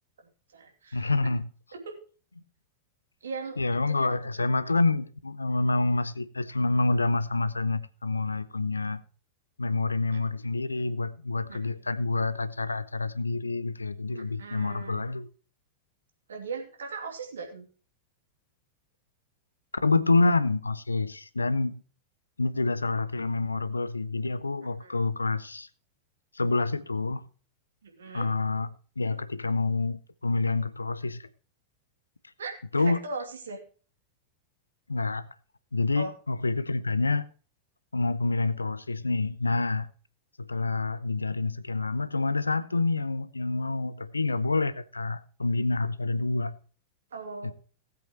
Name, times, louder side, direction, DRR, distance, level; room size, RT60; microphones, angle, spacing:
voice 1, 0.2-1.1 1.7-2.0 3.2-3.6 3.9-4.0 10.1-10.2 11.5-11.6 11.8-11.9 14.1-15.1 16.3-17.7 24.8-24.9 27.8-28.3 32.4-33.6 35.9-36.1 47.1-47.5, right 4 dB, 70° right, 2.7 m, -39 dB
voice 2, 0.9-1.5 3.6-9.0 9.6-15.3 19.8-21.8 22.4-25.7 26.3-27.2 28.1-28.7 29.0-31.3 32.7-33.0 34.9-35.3 35.7-37.2 37.9-39.9 40.4-46.6 47.4-47.5, left 3 dB, 80° left, 0.7 m, -27 dB
18.5 x 8.1 x 3.0 m
figure-of-eight pair, 90°, 0 cm